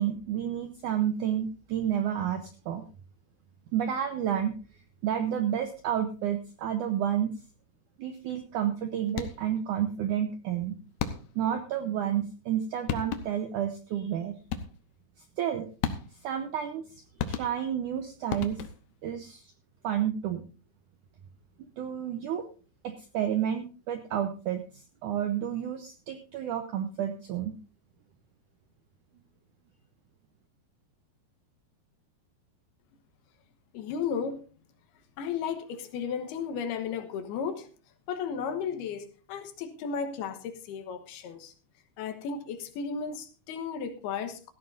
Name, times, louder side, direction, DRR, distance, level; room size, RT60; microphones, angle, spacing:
voice 1, 0.0-2.8 3.7-4.6 5.0-7.3 8.0-10.8 11.3-14.3 15.4-15.7 16.2-16.8 17.2-18.6 19.0-19.5 19.8-20.4 21.8-22.5 22.8-27.6, right 10 dB, 85° right, 8 dB, 1.8 m, -30 dB
sound 1, 9.1-9.6 11.0-11.5 12.5-12.6 12.9-13.5 14.5-15.0 15.8-16.4 17.2-17.9 18.3-19.0, left 8 dB, 90° left, 1.6 m, -34 dB
voice 2, 33.7-34.4 35.2-37.7 38.1-41.5 42.0-44.5, left 6 dB, 75° left, 7 dB, 3.1 m, -34 dB
17.0 x 13.5 x 2.6 m, 0.36 s
omnidirectional pair, 4.8 m